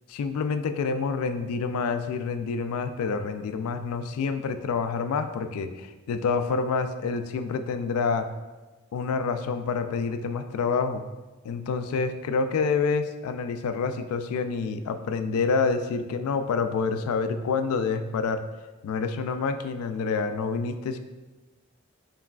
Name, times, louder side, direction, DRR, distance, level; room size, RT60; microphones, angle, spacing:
voice 1, 0.1-8.3 8.9-11.0 11.4-18.4 18.8-21.0, left 5 dB, 80° left, 12 dB, 0.3 m, -27 dB
4.6 x 3.1 x 2.3 m, 1.2 s
head